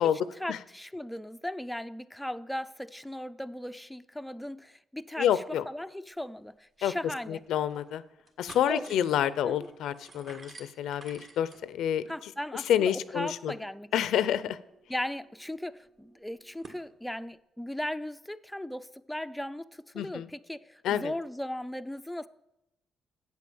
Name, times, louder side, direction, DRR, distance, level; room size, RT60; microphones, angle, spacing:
voice 1, 0.0-7.4 8.7-9.0 9.5-9.6 12.1-13.9 14.2-14.5 14.9-22.3, left 1 dB, 5° left, 0.4 m, -37 dB
voice 2, 5.2-5.6 6.8-6.9 7.3-8.0 8.4-12.0 12.7-13.5 13.9-14.6 20.0-20.3 20.8-21.1, left 10 dB, 80° left, 0.5 m, -28 dB
sound 1, 6.5-6.6 6.8-6.9 7.4-7.9 8.2-16.8, right 3 dB, 45° right, 1.6 m, -54 dB
8.3 x 8.2 x 6.9 m
cardioid pair, 90°, 0 cm